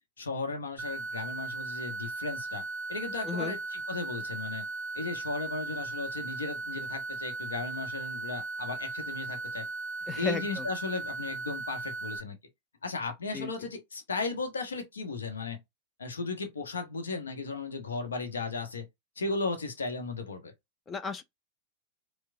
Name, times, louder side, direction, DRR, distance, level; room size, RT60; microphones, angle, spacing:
voice 1, 0.2-2.6 2.9-4.6 4.9-9.7 10.1-12.4 12.8-15.6 16.0-18.9 19.2-20.5, left 3 dB, 70° left, 0.9 m, -35 dB
sound 1, 0.8-12.2, right 3 dB, 20° right, 0.7 m, -37 dB
voice 2, 3.2-3.6 10.1-10.7 13.3-13.5 20.9-21.2, left 4 dB, 20° left, 0.4 m, -34 dB
4.6 x 2.2 x 2.5 m
figure-of-eight pair, 90°, 0 cm